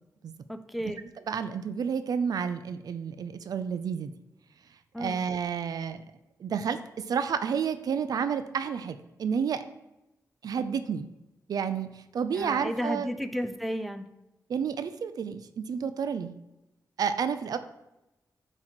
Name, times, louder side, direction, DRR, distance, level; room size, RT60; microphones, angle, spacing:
voice 1, 0.5-1.1 4.9-5.3 12.4-14.1, equal, ahead, 9 dB, 0.4 m, -33 dB
voice 2, 1.3-4.1 5.0-6.0 6.4-6.8 7.1-9.6 10.4-11.1 11.5-13.1 14.5-16.3 17.0-17.6, right 7 dB, 75° right, 11 dB, 0.4 m, -30 dB
8.8 x 3.0 x 4.3 m, 0.92 s
wide cardioid pair, 125°, 7 cm